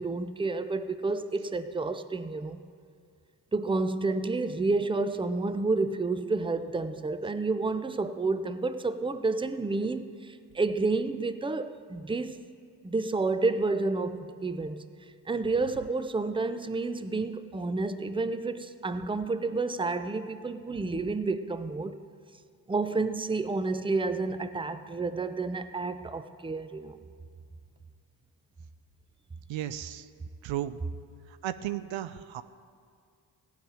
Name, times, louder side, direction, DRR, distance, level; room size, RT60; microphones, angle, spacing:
voice 1, 0.0-2.6 3.5-12.4 12.8-14.8 15.3-22.0 22.7-27.0, right 3 dB, 10° right, 0.7 m, -30 dB
voice 2, 29.5-30.1 30.4-30.8 31.4-32.4, right 12 dB, 75° right, 0.6 m, -34 dB
15.5 x 5.1 x 9.0 m
supercardioid pair, 45°, 47 cm